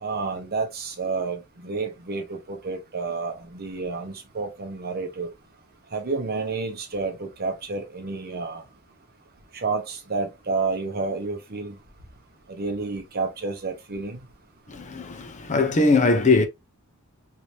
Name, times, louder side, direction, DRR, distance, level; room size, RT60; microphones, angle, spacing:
voice 1, 0.0-5.3 5.9-8.6 9.5-11.7 12.5-14.2, right 4 dB, 45° right, 0.9 m, -30 dB
voice 2, 14.7-16.5, left 3 dB, 35° left, 0.6 m, -20 dB
3.2 x 2.7 x 2.9 m
head